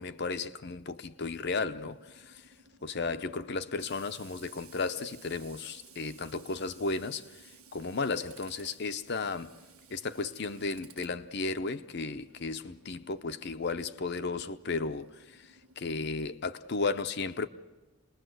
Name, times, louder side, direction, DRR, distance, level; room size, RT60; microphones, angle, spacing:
voice 1, 0.0-2.5 2.8-9.6 9.9-17.5, left 3 dB, 50° left, 0.7 m, -34 dB
Tools, 1.4-15.8, right 5 dB, 85° right, 1.6 m, -57 dB
27.5 x 20.5 x 7.9 m
head